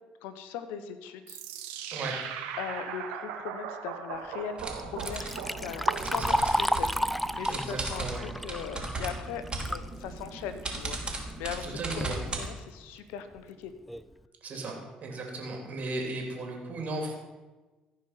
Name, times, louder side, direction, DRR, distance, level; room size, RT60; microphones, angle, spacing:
voice 1, 0.2-1.4 2.6-13.7, left 8 dB, 80° left, 11 dB, 0.9 m, -40 dB
sound 1, 1.3-6.6, right 8 dB, 80° right, 1.1 m, -39 dB
sound 2, 4.6-12.5, right 2 dB, 30° right, 2.9 m, -37 dB
Liquid, 4.8-9.9 10.3-10.4 11.3-11.4 11.8-12.1 12.8-12.9 13.4-13.5 13.9-14.1, equal, ahead, 0.4 m, -31 dB
voice 2, 6.0-6.4 7.5-8.2 11.6-12.2 14.4-17.1, right 2 dB, 50° right, 1 dB, 3.0 m, -36 dB
15.0 x 5.1 x 5.9 m, 1.2 s
hypercardioid pair, 60°, 3 cm